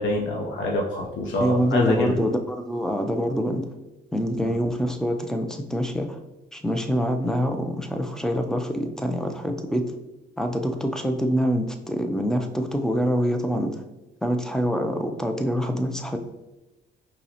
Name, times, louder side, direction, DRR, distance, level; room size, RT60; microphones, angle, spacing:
voice 1, 0.0-2.2 4.4-4.5, left 2 dB, 70° left, -1 dB, 0.6 m, -25 dB
voice 2, 1.4-3.7 4.1-6.2 6.5-9.9 10.4-13.8 14.2-16.2, equal, 5° left, 5 dB, 0.4 m, -25 dB
5.2 x 2.1 x 2.7 m, 1.1 s
cardioid pair, 90°, 20 cm